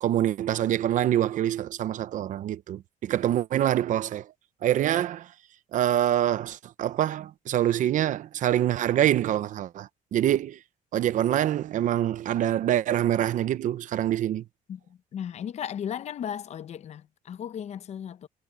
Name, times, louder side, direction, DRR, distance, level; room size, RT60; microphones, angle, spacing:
voice 1, 0.0-4.3 4.6-5.3 5.7-10.6 10.9-14.4, right 11 dB, 60° right, 0.7 m, -25 dB
voice 2, 14.7-18.3, left 9 dB, 50° left, 0.8 m, -36 dB
cardioid pair, 140°, 15 cm